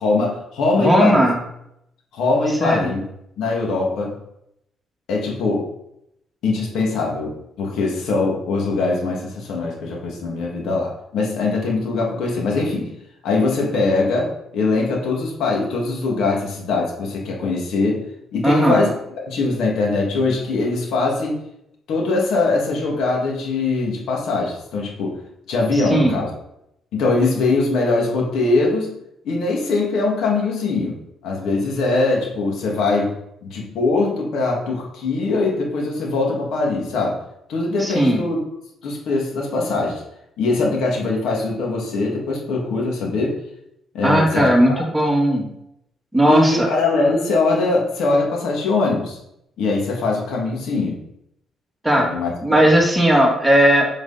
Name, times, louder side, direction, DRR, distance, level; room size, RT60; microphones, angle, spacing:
voice 1, 0.0-1.2 2.1-3.0 3.4-4.1 5.1-5.7 6.4-12.9 13.2-18.0 18.3-18.9 19.2-21.4 21.9-25.1 25.5-26.3 26.9-28.9 29.2-31.0 31.2-33.1 33.4-37.2 37.5-38.4 38.8-40.0 40.4-43.4 43.9-44.8 46.3-49.2 49.6-51.0 52.0-52.6, left 3 dB, 80° left, -2 dB, 2.9 m, -21 dB
voice 2, 0.8-1.4 2.6-2.9 18.4-18.9 25.7-26.2 37.8-38.2 44.0-45.5 46.1-46.7 51.8-52.1 52.4-53.9, right 1 dB, 5° right, -2 dB, 2.7 m, -17 dB
8.0 x 7.3 x 4.5 m, 0.78 s
cardioid pair, 90°, 0 cm